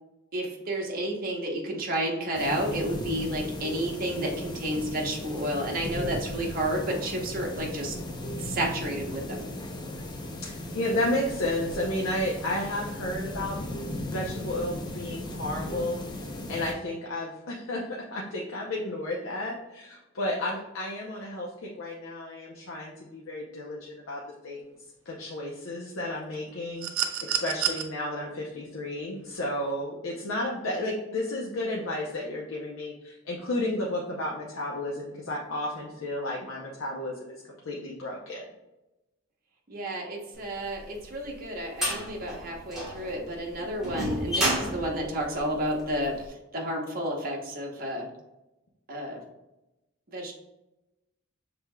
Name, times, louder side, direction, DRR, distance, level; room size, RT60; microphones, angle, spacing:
voice 1, 0.3-7.9 8.4-9.5 39.7-46.1 46.5-48.0 48.9-49.2 50.1-50.3, right 1 dB, 45° right, 0 dB, 0.9 m, -31 dB
sound 1, 2.3-16.7, left 1 dB, 20° left, 0.5 m, -37 dB
voice 2, 10.4-13.6 14.1-16.0 16.5-21.5 21.8-24.7 25.1-37.4 37.7-38.4, left 1 dB, 80° left, -2 dB, 0.7 m, -32 dB
sound 2, 26.8-27.8 29.3-29.5, right 11 dB, 85° right, 0.5 m, -29 dB
sound 3, 40.7-46.1, equal, ahead, 1.5 m, -31 dB
6.0 x 3.4 x 2.2 m, 0.97 s
head